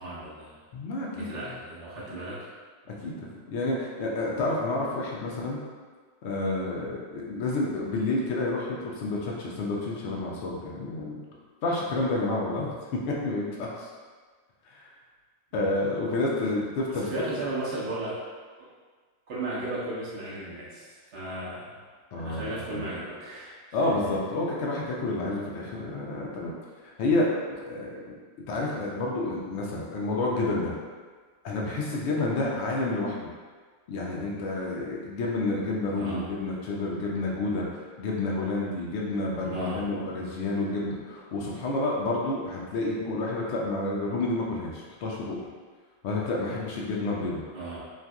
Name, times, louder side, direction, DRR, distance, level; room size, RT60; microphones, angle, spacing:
voice 1, 0.0-0.6 1.1-2.5 16.9-18.2 18.6-18.7 19.3-21.8 22.1-23.9 35.9-36.3 39.5-39.8 47.5-47.8, right 2 dB, 50° right, -7 dB, 0.7 m, -35 dB
voice 2, 0.7-1.3 3.0-5.6 6.2-11.2 11.6-13.9 14.7-14.9 15.5-17.1 22.1-22.8 23.7-26.5 26.8-28.1 28.5-30.7 31.4-33.2 33.9-37.7 38.0-45.4 46.0-47.4, left 2 dB, 45° left, -3 dB, 0.4 m, -29 dB
2.5 x 2.4 x 2.2 m, 1.5 s
figure-of-eight pair, 90°, 0 cm